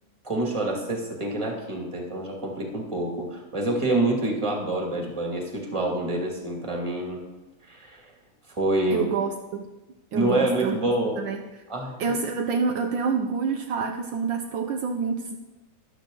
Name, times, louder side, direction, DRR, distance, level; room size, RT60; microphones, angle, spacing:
voice 1, 0.2-7.2 7.7-8.0 8.5-9.1 10.1-11.2 11.7-12.0, right 1 dB, 15° right, 0 dB, 2.2 m, -27 dB
voice 2, 8.9-9.7 10.1-10.8 11.1-11.5 12.0-15.4, right 5 dB, 70° right, 4 dB, 1.5 m, -27 dB
13.0 x 11.5 x 3.9 m, 1.0 s
omnidirectional pair, 2.2 m